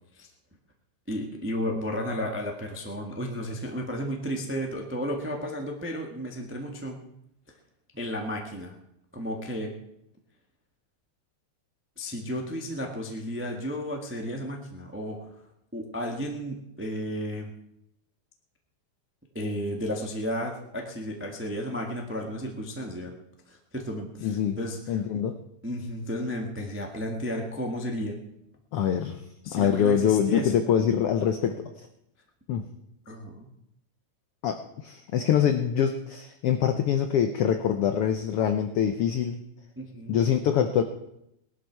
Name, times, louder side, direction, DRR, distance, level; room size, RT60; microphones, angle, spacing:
voice 1, 1.1-7.0 7.9-8.7 9.1-9.7 12.0-15.3 15.7-17.5 19.3-23.1 23.5-25.0 25.6-28.2 29.4-30.5 33.1-33.5 39.8-40.2, equal, 15° right, 1 dB, 0.3 m, -33 dB
voice 2, 24.2-24.6 24.9-25.4 28.7-29.2 29.5-31.7 32.5-32.7 34.4-39.4 40.1-40.8, left 8 dB, 80° left, 7 dB, 1.3 m, -24 dB
18.5 x 12.0 x 4.7 m, 0.81 s
omnidirectional pair, 3.5 m